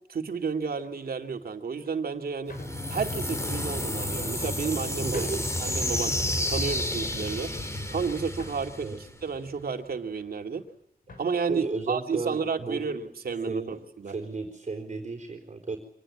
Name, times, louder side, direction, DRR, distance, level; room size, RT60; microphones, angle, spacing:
voice 1, 0.1-2.6 2.9-5.3 5.6-6.1 6.5-7.5 7.9-10.6 11.2-14.1, right 5 dB, 75° right, 5 dB, 2.5 m, -31 dB
sound 1, 0.8-1.1 1.8-2.0 2.5-2.9 3.8-4.4 4.9-5.0 5.1-5.6 6.0-6.3 6.6-7.0 7.6-8.9 9.4-10.3 10.6-10.8 11.0-11.4 12.2-12.3 12.6-12.8 14.1-14.3, left 2 dB, 65° left, 6.1 m, -48 dB
sound 2, 2.5-9.4, left 1 dB, 20° left, 2.9 m, -31 dB
voice 2, 5.0-5.5 8.8-9.0 11.5-12.8 13.5-13.8 14.1-15.8, right 4 dB, 45° right, 3 dB, 4.1 m, -33 dB
26.0 x 19.5 x 9.9 m, 0.71 s
wide cardioid pair, 175°, 16 cm